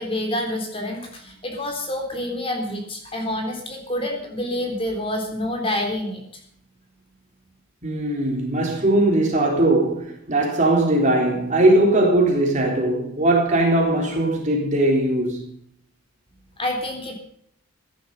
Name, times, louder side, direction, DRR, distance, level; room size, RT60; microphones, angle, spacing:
voice 1, 0.0-6.2 16.6-17.1, left 1 dB, 25° left, 3.5 m, -27 dB
voice 2, 7.8-15.5, right 1 dB, 35° right, 3.9 m, -20 dB
16.0 x 11.0 x 5.5 m
head